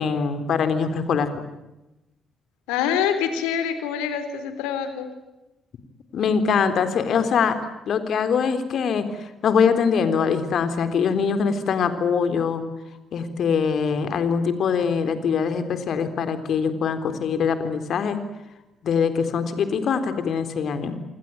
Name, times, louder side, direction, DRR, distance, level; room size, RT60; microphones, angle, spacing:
voice 1, 0.0-1.4 6.1-7.5 7.9-12.6 13.1-18.2 18.8-21.0, left 6 dB, 60° left, 10 dB, 3.8 m, -23 dB
voice 2, 2.7-5.1, left 8 dB, 75° left, 10 dB, 3.8 m, -25 dB
27.5 x 23.5 x 9.1 m, 0.96 s
hypercardioid pair, 40°, 0 cm